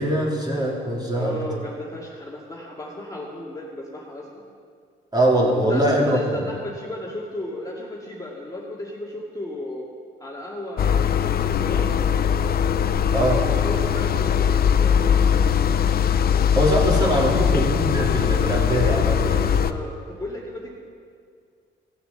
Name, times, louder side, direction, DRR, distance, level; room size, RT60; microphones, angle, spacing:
voice 1, 0.0-1.4 5.1-6.4 13.1-13.4 16.5-19.4, right 1 dB, 20° right, -3 dB, 3.4 m, -22 dB
voice 2, 1.1-4.4 5.7-9.9 10.2-12.0 13.6-15.2 19.5-20.7, left 1 dB, 15° left, -4 dB, 2.2 m, -34 dB
sound 1, 10.8-19.7, left 8 dB, 50° left, 0.6 m, -20 dB
16.5 x 6.8 x 7.0 m, 2.1 s
cardioid pair, 90°, 20 cm